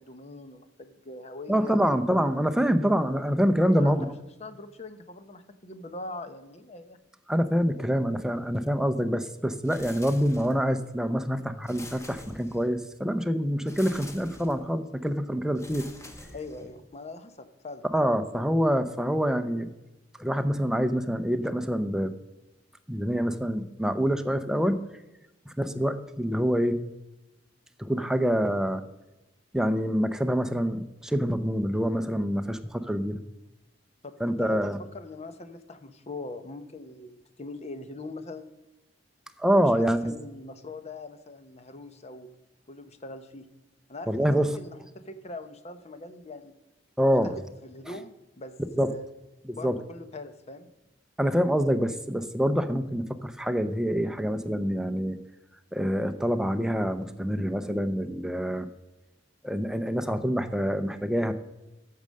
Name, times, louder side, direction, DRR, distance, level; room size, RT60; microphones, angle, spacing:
voice 1, 0.0-1.8 3.7-4.1 4.4-7.0 16.3-17.8 34.0-38.5 39.6-39.7 40.0-42.3 42.7-43.5 43.9-46.5 47.2-49.1 49.5-50.7, left 2 dB, 35° left, 10 dB, 0.8 m, -42 dB
voice 2, 1.5-4.1 7.3-15.9 17.9-19.7 20.2-22.1 22.9-24.8 25.5-26.8 27.8-28.8 29.5-33.2 34.2-34.8 39.4-40.1 44.1-44.5 47.0-47.3 48.8-48.9 49.5-49.8 51.2-55.2 55.7-58.7 59.4-61.3, equal, 5° right, 7 dB, 0.6 m, -26 dB
sound 1, 9.6-10.8 11.6-12.9 13.7-14.7 15.5-16.9, left 2 dB, 15° left, 1.0 m, -46 dB
8.8 x 6.6 x 6.4 m, 1.0 s
head